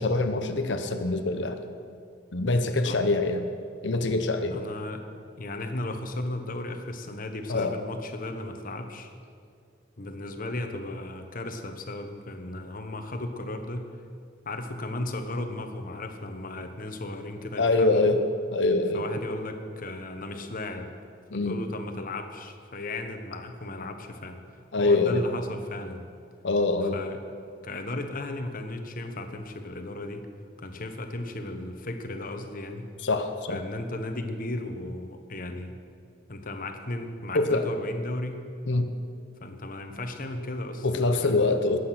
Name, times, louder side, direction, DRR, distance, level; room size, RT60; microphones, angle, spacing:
voice 1, 0.0-1.6 2.3-3.5 3.8-4.6 7.5-7.7 17.6-18.2 18.5-19.0 21.3-21.6 24.7-25.2 26.4-27.0 33.0-33.6 37.3-37.6 38.7-38.9 40.8-41.8, left 2 dB, 70° left, 7 dB, 0.9 m, -24 dB
voice 2, 4.5-5.0 5.4-9.1 10.0-13.9 14.4-18.2 18.9-20.9 21.3-26.0 26.9-27.2 27.6-30.3 30.6-32.9 33.5-35.8 36.3-38.4 39.4-40.9 41.2-41.6, left 2 dB, 50° left, 6 dB, 1.2 m, -35 dB
21.0 x 8.3 x 6.0 m, 2.3 s
head